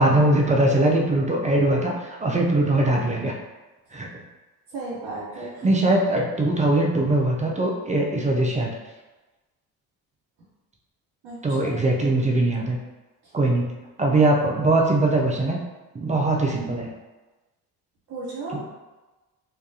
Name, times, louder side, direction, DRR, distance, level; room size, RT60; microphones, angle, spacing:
voice 1, 0.0-3.3 3.9-4.1 5.6-8.7 11.4-12.8 13.3-13.7 14.0-15.6 15.9-16.9 18.5-18.6, right 2 dB, 20° right, -1 dB, 0.3 m, -21 dB
voice 2, 4.7-5.7 11.2-11.8 18.1-18.6, right 3 dB, 65° right, -10 dB, 1.0 m, -34 dB
2.3 x 2.2 x 2.6 m, 1.2 s
hypercardioid pair, 50°, 47 cm